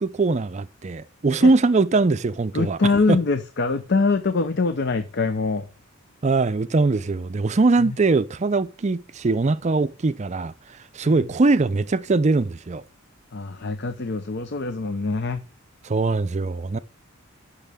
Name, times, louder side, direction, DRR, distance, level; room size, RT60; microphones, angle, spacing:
voice 1, 0.0-2.8 3.1-3.2 6.2-10.5 10.9-12.8 15.8-16.8, right 3 dB, 35° right, 0.4 m, -21 dB
voice 2, 2.5-5.7 7.8-7.9 11.0-11.2 13.3-15.4, left 3 dB, 50° left, 0.6 m, -24 dB
13.5 x 6.4 x 3.6 m
head